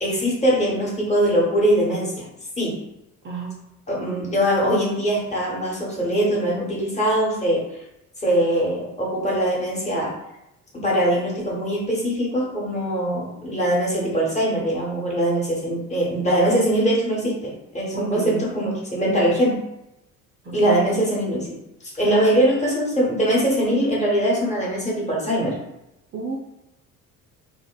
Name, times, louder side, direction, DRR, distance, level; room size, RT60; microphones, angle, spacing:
voice 1, 0.0-2.2 2.6-2.7 3.9-7.6 8.2-10.1 10.7-19.6 20.5-21.5 21.8-25.5, right 1 dB, 15° left, -4 dB, 1.0 m, -22 dB
voice 2, 3.2-3.5 17.9-18.5 20.4-20.8 22.1-22.3 26.1-26.4, right 5 dB, 25° right, -4 dB, 0.5 m, -31 dB
2.8 x 2.1 x 2.3 m, 0.88 s
figure-of-eight pair, 50°, 43 cm